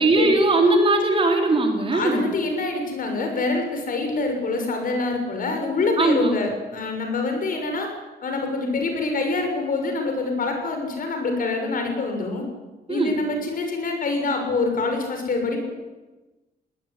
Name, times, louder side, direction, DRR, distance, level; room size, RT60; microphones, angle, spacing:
voice 1, 0.0-2.2 6.0-6.4 12.9-13.2, right 2 dB, 30° right, 3 dB, 3.9 m, -19 dB
voice 2, 1.9-7.9 8.2-12.4 12.9-15.7, left 3 dB, 50° left, 4 dB, 6.6 m, -25 dB
21.5 x 19.0 x 9.8 m, 1.1 s
wide cardioid pair, 155°, 18 cm